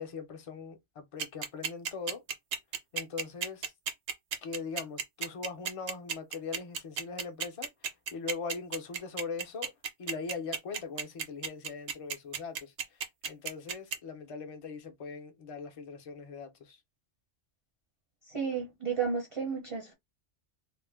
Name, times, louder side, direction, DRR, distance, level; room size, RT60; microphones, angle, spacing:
voice 1, 0.0-2.2 2.9-3.7 4.4-9.7 10.0-16.8, left 5 dB, 45° left, 0.4 m, -41 dB
sound 1, 1.2-14.0, right 7 dB, 70° right, 0.9 m, -33 dB
voice 2, 18.3-19.9, right 6 dB, 35° right, 0.5 m, -32 dB
2.5 x 2.1 x 3.3 m
omnidirectional pair, 1.2 m